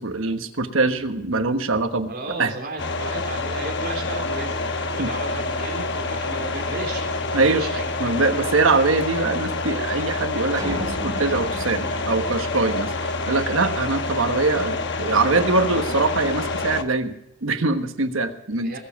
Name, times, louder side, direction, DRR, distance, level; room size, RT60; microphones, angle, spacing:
voice 1, 0.0-2.1 2.4-2.5 5.0-5.1 7.3-7.7 8.0-17.1 17.4-18.7, right 3 dB, 75° right, 7 dB, 1.3 m, -23 dB
voice 2, 2.1-7.9 18.6-18.8, right 2 dB, 50° right, 0 dB, 3.7 m, -34 dB
sound 1, 2.8-16.8, left 3 dB, 55° left, 1.1 m, -27 dB
sound 2, 10.6-13.0, equal, 20° right, 2.8 m, -34 dB
20.5 x 7.4 x 5.8 m, 0.85 s
head